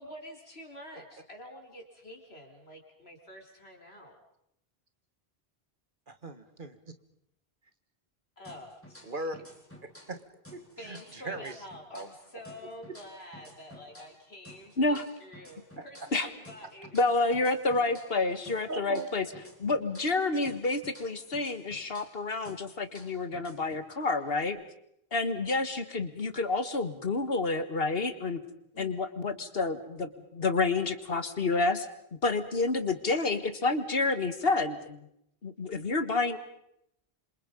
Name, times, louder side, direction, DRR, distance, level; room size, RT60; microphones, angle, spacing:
voice 1, 0.0-4.2 8.4-9.0 10.8-17.0 17.8-18.2 28.7-29.0, equal, 90° left, 2 dB, 4.5 m, -48 dB
voice 2, 6.1-6.8 9.0-9.4 10.1-10.2 10.5-11.5 11.9-12.1 18.7-19.1, right 2 dB, 55° right, 9 dB, 1.9 m, -38 dB
sound 1, 8.4-10.2 10.4-14.2 14.4-18.2 18.4-22.2 22.4-24.4, equal, 10° left, 4.4 m, -53 dB
voice 3, 16.9-19.3 19.6-24.6 25.1-28.4 28.8-31.9 32.2-35.1 35.4-36.4, left 3 dB, 70° left, 11 dB, 1.9 m, -29 dB
27.5 x 26.5 x 5.3 m, 0.76 s
omnidirectional pair, 1.0 m